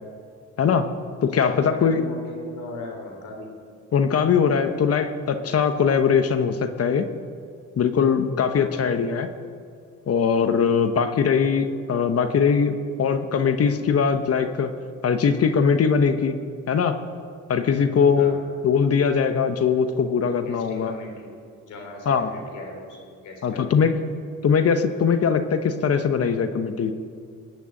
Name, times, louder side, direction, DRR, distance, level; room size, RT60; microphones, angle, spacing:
voice 1, 0.6-0.9 1.2-2.0 3.9-7.1 7.8-9.3 10.1-14.7 15.0-16.3 16.7-17.0 17.5-18.4 18.6-20.9 22.1-22.3 23.4-23.9 24.4-26.9, left 6 dB, 50° left, 8 dB, 1.1 m, -21 dB
voice 2, 1.2-3.5 8.5-8.8 17.6-17.9 18.2-18.4 20.4-21.3 21.6-23.9, left 2 dB, 85° left, 1 dB, 3.6 m, -39 dB
19.5 x 6.7 x 8.9 m, 2.2 s
cardioid pair, 90°, 30 cm